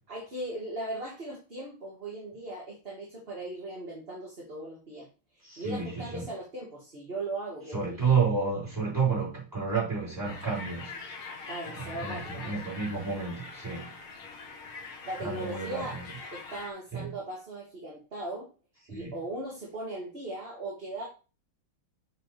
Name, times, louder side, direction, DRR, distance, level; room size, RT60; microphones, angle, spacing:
voice 1, 0.1-5.1 5.3-8.1 11.5-12.6 15.1-16.0 16.3-18.5 18.9-21.1, right 2 dB, 30° right, 2.3 m, -38 dB
voice 2, 5.4-6.3 7.7-11.0 11.7-13.9 15.2-16.0 16.9-17.0 18.9-19.1, right 5 dB, 10° right, 5.1 m, -30 dB
sound 1, 10.2-16.7, left 4 dB, 90° left, 2.5 m, -43 dB
7.5 x 6.9 x 3.5 m
omnidirectional pair, 2.2 m